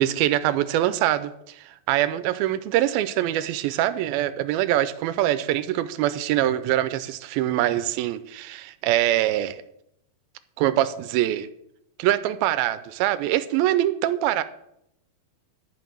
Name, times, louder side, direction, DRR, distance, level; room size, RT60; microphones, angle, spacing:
voice 1, 0.0-9.6 10.6-11.5 12.0-14.4, right 13 dB, 85° right, 12 dB, 2.5 m, -24 dB
11.5 x 6.5 x 9.3 m, 0.77 s
omnidirectional pair, 4.3 m